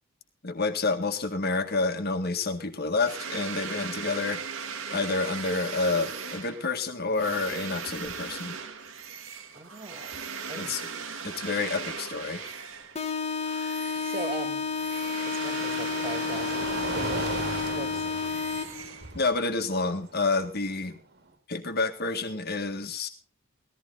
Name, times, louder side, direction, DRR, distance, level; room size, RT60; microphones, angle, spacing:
voice 1, 0.4-4.4 4.9-8.6 10.6-10.8 11.2-12.5 19.1-21.0 21.5-23.1, left 3 dB, 50° left, 7 dB, 1.8 m, -29 dB
sound 1, 3.0-13.1 13.4-19.4, right 5 dB, 75° right, 1.8 m, -38 dB
sound 2, 7.5-7.6 7.9-8.3 10.1-10.2 13.2-21.3, right 3 dB, 55° right, 2.0 m, -39 dB
voice 2, 9.5-10.2 10.5-10.8 14.0-14.7 15.2-17.3 17.7-18.1, right 3 dB, 30° right, 8 dB, 2.1 m, -39 dB
sound 3, 12.9-18.9, left 5 dB, 30° left, 1.5 m, -31 dB
16.5 x 14.0 x 4.0 m, 0.33 s
head